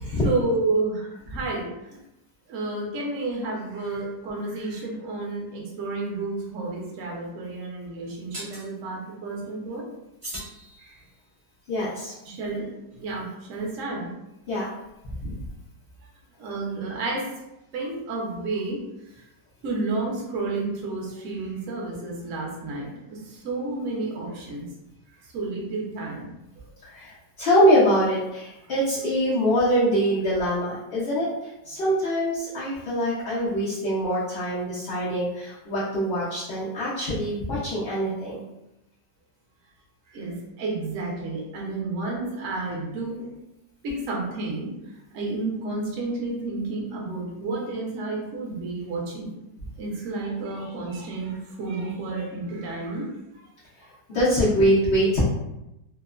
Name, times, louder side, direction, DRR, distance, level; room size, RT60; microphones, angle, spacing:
voice 1, 0.2-2.0 2.5-9.9 10.8-11.0 12.2-14.1 16.4-17.3 17.7-18.8 19.2-19.3 19.6-24.7 25.3-26.3 40.1-43.3 43.8-44.7 45.1-49.3 49.8-53.1, right 3 dB, 60° right, -2 dB, 0.8 m, -31 dB
sound 1, 6.4-6.5 8.3-8.7 10.2-11.3, equal, 45° right, 0.4 m, -39 dB
voice 2, 11.7-12.2 14.5-14.7 15.0-15.4 26.8-38.4 54.1-55.3, equal, 80° left, -9 dB, 0.5 m, -24 dB
2.9 x 2.1 x 2.3 m, 0.91 s
omnidirectional pair, 1.9 m